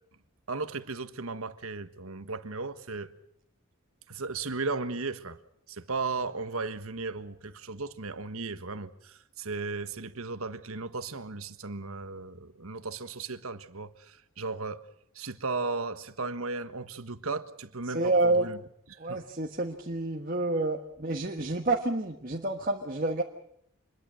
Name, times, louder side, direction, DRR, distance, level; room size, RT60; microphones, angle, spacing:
voice 1, 0.5-3.1 4.1-5.4 5.7-14.9 15.1-18.6 18.9-19.2, right 3 dB, 80° right, 1.5 m, -36 dB
voice 2, 17.9-18.5 19.0-23.2, right 2 dB, 40° right, 1.5 m, -28 dB
26.0 x 21.5 x 6.5 m
head